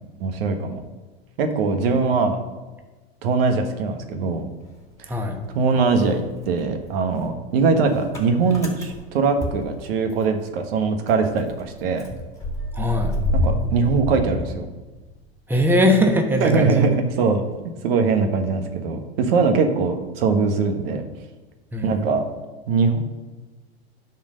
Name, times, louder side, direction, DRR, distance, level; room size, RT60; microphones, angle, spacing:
voice 1, 0.2-0.8 1.4-2.4 3.2-4.5 5.0-5.1 5.5-12.1 13.3-14.7 16.4-17.4 17.8-21.0 21.8-22.2 22.7-23.0, right 4 dB, 65° right, 6 dB, 1.4 m, -21 dB
Motor vehicle (road) / Engine starting, 4.3-5.5 5.8-10.4 10.7-10.8 11.1-15.2, left 1 dB, 10° left, 2.8 m, -29 dB
voice 2, 12.7-13.1 15.5-16.8 21.7-21.9, left 1 dB, 5° right, 3 dB, 1.2 m, -20 dB
10.5 x 4.5 x 6.5 m, 1.2 s
hypercardioid pair, 105°, 31 cm